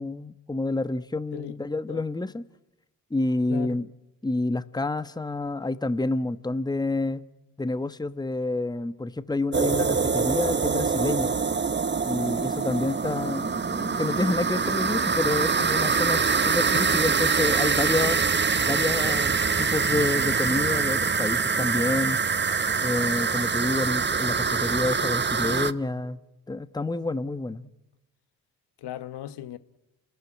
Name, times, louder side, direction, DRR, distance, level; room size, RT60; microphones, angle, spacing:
voice 1, 0.0-2.4 3.1-3.9 4.2-7.2 7.6-11.3 12.0-18.2 18.6-22.2 22.8-26.2 26.5-27.7, left 2 dB, 10° left, 1.2 m, -28 dB
voice 2, 3.5-3.8 16.7-17.0 28.8-29.6, left 11 dB, 65° left, 1.2 m, -37 dB
sound 1, 9.5-25.7, right 5 dB, 25° right, 1.0 m, -24 dB
30.0 x 14.0 x 9.9 m
hypercardioid pair, 50°, 44 cm